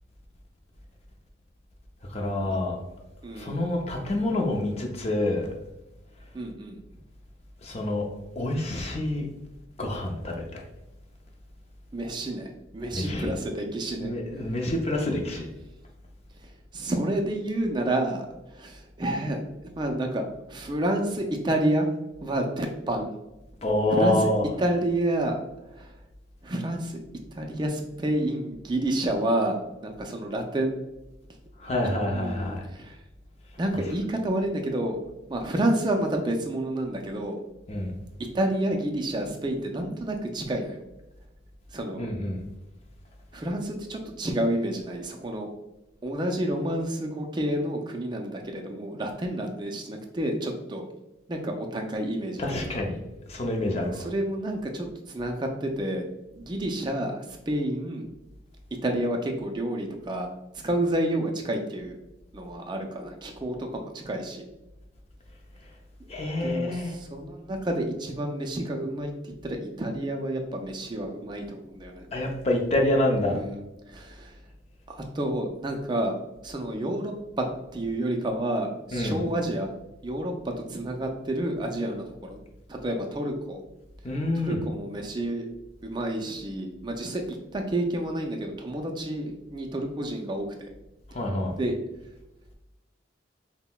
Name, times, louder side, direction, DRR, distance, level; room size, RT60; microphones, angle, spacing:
voice 1, 2.1-2.8 3.3-5.5 7.6-8.1 8.4-9.3 9.8-10.6 12.9-13.3 14.0-15.5 23.6-24.6 31.6-32.6 33.8-33.9 37.7-37.9 42.0-42.4 52.4-53.0 53.3-54.0 66.1-67.0 72.1-73.4 78.9-79.2 84.0-84.6 91.1-91.5, left 1 dB, 35° left, 1 dB, 0.6 m, -27 dB
voice 2, 3.2-3.6 6.3-6.8 11.9-14.1 16.7-21.9 22.2-23.1 23.9-24.3 24.6-25.4 25.7-25.9 26.4-27.0 27.3-30.7 32.1-33.0 33.6-35.0 35.3-37.4 38.2-40.8 41.7-42.1 43.3-45.5 46.0-50.8 51.3-52.8 53.9-56.1 56.3-58.1 58.8-62.0 62.3-64.5 66.4-72.1 73.4-73.6 73.9-74.4 74.9-76.2 76.4-77.5 77.7-79.7 80.0-82.4 82.7-83.6 84.3-85.5 85.8-90.7 91.6-91.8, right 1 dB, 25° right, 3 dB, 0.4 m, -29 dB
5.6 x 2.1 x 2.2 m, 1.0 s
head